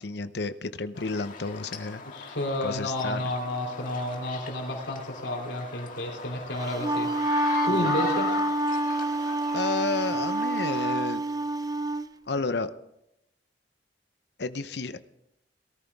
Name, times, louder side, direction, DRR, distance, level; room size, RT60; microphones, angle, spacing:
voice 1, 0.0-2.0 2.6-3.3 7.7-7.9 9.0-9.1 9.5-11.2 12.3-12.7 14.4-15.0, left 3 dB, 65° left, 11 dB, 0.8 m, -31 dB
sound 1, 1.0-11.0, left 4 dB, 50° left, 1.9 m, -39 dB
voice 2, 2.0-7.1 7.6-8.3, left 1 dB, 90° left, 1 dB, 3.1 m, -31 dB
Wind instrument woodwind instrument, 6.6-12.1, right 1 dB, 20° right, 0.5 m, -27 dB
18.0 x 13.5 x 3.5 m, 0.84 s
head